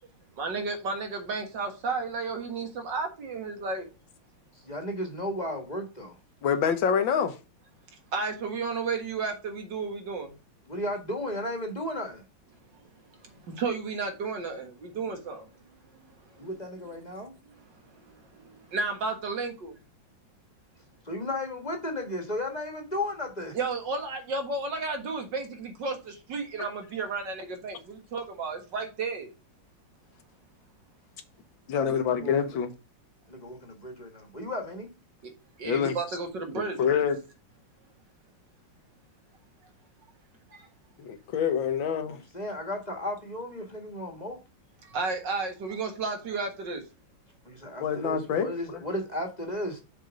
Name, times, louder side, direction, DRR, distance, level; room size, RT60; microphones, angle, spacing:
voice 1, 0.4-3.9 8.1-10.3 13.1-16.5 17.2-17.3 17.8-19.8 23.5-29.3 35.6-36.8 40.5-40.7 44.8-46.8, right 4 dB, 60° right, 2.2 m, -33 dB
voice 2, 4.6-6.2 10.7-12.2 16.4-17.3 21.0-23.6 31.9-32.6 33.3-34.9 42.1-44.4 47.4-49.8, left 1 dB, 25° left, 1.4 m, -34 dB
voice 3, 6.4-7.4 26.6-26.7 31.7-32.7 35.6-36.0 36.8-37.2 41.0-42.2 47.8-48.5, left 7 dB, 75° left, 1.7 m, -26 dB
6.7 x 4.6 x 5.0 m
omnidirectional pair, 2.2 m